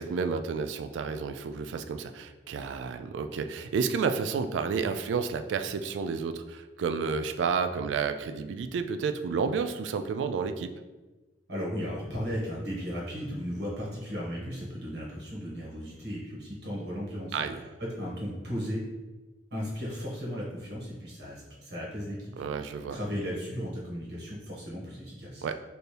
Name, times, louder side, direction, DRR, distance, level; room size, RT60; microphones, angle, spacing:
voice 1, 0.0-10.7 17.3-17.6 22.4-23.0 25.4-25.6, right 5 dB, 85° right, 8 dB, 0.3 m, -31 dB
voice 2, 11.5-17.5 17.8-18.9 19.5-22.3 22.6-25.4, equal, 65° right, -5 dB, 1.4 m, -35 dB
4.3 x 2.7 x 3.3 m, 1.2 s
head